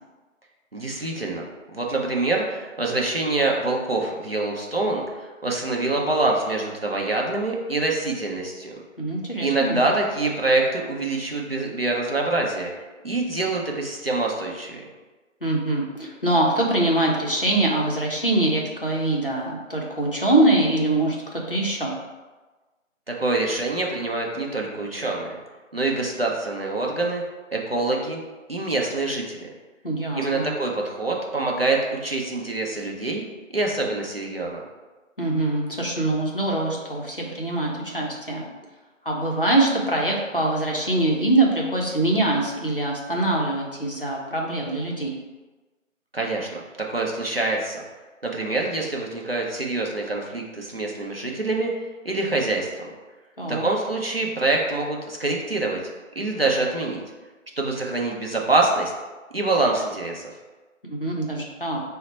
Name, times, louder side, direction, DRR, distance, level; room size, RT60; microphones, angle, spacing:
voice 1, 0.7-1.4 1.7-8.8 9.4-12.7 13.0-14.9 23.1-25.4 25.7-27.2 27.5-28.2 28.5-29.4 30.2-33.2 33.5-34.6 46.1-47.8 48.2-51.7 52.0-52.9 53.5-55.8 56.2-57.0 57.6-58.9 59.3-60.2, right 2 dB, 50° right, -1 dB, 0.5 m, -25 dB
voice 2, 9.0-9.8 15.4-21.9 29.8-30.5 35.2-38.4 39.0-45.1 53.4-53.7 60.8-61.8, right 2 dB, 45° left, -2 dB, 0.6 m, -23 dB
3.9 x 2.1 x 4.1 m, 1.2 s
figure-of-eight pair, 175°, 40 cm